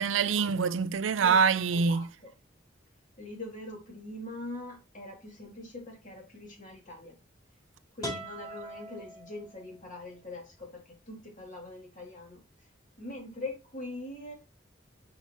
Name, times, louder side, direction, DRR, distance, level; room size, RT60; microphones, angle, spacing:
voice 1, 0.0-2.1, right 6 dB, 85° right, 0.5 m, -25 dB
voice 2, 1.7-2.1 3.2-7.2 7.9-12.4 13.0-14.3, left 2 dB, 45° left, 2.6 m, -42 dB
sound 1, 8.0-9.9, right 1 dB, 20° left, 3.4 m, -41 dB
5.7 x 5.7 x 3.0 m
head